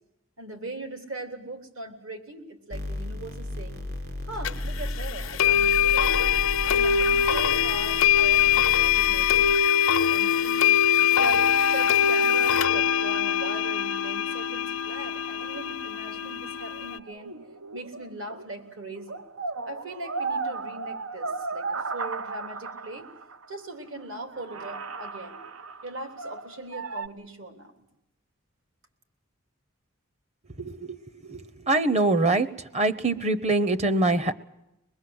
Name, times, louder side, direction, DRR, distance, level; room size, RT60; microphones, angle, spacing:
voice 1, 0.4-3.8 4.3-6.1 6.6-9.5 10.1-10.7 11.0-11.5 11.7-17.3 17.7-19.2 19.6-21.6 21.9-23.1 23.5-25.4 25.8-27.7, right 1 dB, 70° right, 6 dB, 3.4 m, -40 dB
sound 1, 2.7-9.6, left 1 dB, 55° right, 3.9 m, -34 dB
sound 2, 4.4-4.5 5.4-17.0, left 8 dB, 90° left, 0.8 m, -22 dB
sound 3, 15.1-18.7 19.0-23.5 24.0-24.1 24.3-27.1, right 4 dB, 85° right, 0.8 m, -36 dB
voice 2, 30.6-31.0 31.3-31.4 31.6-32.5 32.7-34.3, right 2 dB, 35° right, 13 dB, 1.0 m, -23 dB
24.0 x 20.5 x 7.9 m, 0.88 s
head